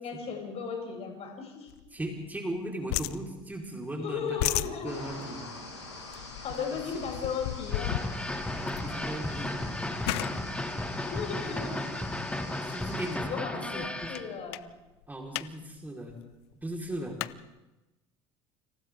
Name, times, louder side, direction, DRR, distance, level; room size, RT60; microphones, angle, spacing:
voice 1, 0.0-1.7 4.0-4.9 6.1-8.0 11.0-11.7 13.2-14.6, left 6 dB, 50° left, 1 dB, 8.0 m, -36 dB
sound 1, 1.7-2.6 2.9-3.9 4.2-12.0 12.6-12.9 13.3-13.4 13.6-14.2 14.5-14.7 15.0-15.5 15.8-15.9 16.1-17.3, left 19 dB, 65° left, 0.7 m, -36 dB
voice 2, 1.9-5.5 6.5-7.1 8.5-10.3 11.4-11.9 12.6-14.3 15.1-16.2 16.6-17.2, right 1 dB, 10° right, 0 dB, 4.8 m, -38 dB
sound 2, 4.8-13.2, left 3 dB, 85° left, 6.2 m, -45 dB
sound 3, 7.7-14.3, left 1 dB, 10° left, 2.8 m, -34 dB
29.5 x 27.5 x 3.9 m, 1.0 s
hypercardioid pair, 65°, 14 cm